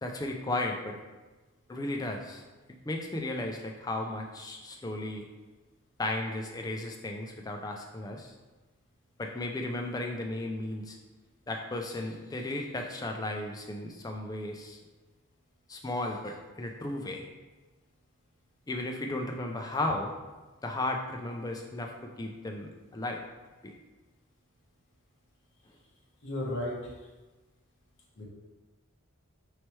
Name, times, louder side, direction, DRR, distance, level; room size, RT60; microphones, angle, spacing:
voice 1, 0.0-1.0 1.7-2.4 2.9-5.3 6.0-8.3 9.2-11.0 11.5-14.8 15.7-17.3 18.7-20.2 20.6-23.2 23.6-23.7, left 2 dB, 15° left, 2 dB, 0.3 m, -35 dB
voice 2, 26.2-26.9 28.2-28.3, left 1 dB, 55° left, -3 dB, 0.9 m, -34 dB
4.3 x 3.2 x 3.0 m, 1.2 s
head